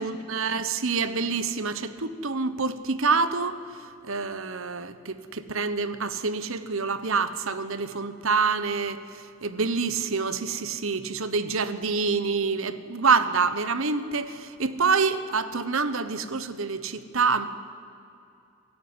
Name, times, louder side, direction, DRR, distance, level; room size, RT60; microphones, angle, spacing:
voice 1, 0.0-3.6 4.0-17.5, right 4 dB, 70° right, 13 dB, 1.1 m, -27 dB
23.5 x 13.5 x 9.8 m, 2.7 s
head